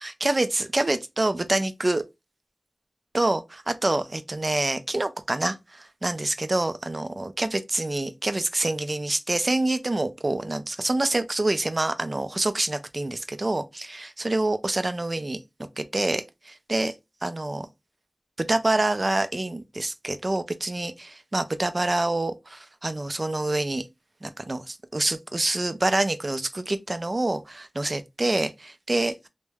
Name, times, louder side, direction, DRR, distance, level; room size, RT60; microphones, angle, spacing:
voice 1, 0.0-2.0 3.1-15.4 15.8-16.9 17.2-17.7 18.4-23.8 24.2-29.3, right 2 dB, 45° right, 0.4 m, -26 dB
3.1 x 2.1 x 2.2 m
wide cardioid pair, 65°, 0 cm